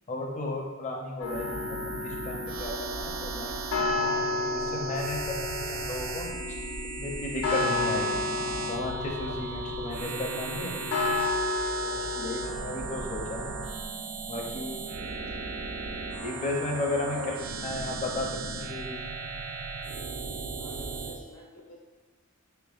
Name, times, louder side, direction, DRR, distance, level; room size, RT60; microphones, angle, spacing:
voice 1, 0.1-6.3 7.0-8.2 8.7-10.8 11.8-13.5 14.3-15.1 16.2-17.3 17.6-19.0, left 2 dB, 35° left, 0 dB, 0.5 m, -34 dB
sound 1, 1.2-12.5, left 3 dB, 85° left, 0.5 m, -32 dB
sound 2, 1.2-21.2, right 4 dB, 75° right, 0.4 m, -36 dB
voice 2, 12.1-12.6 17.1-17.3 20.6-21.7, left 2 dB, 70° left, -3 dB, 0.9 m, -46 dB
4.4 x 2.9 x 2.4 m, 1.3 s
head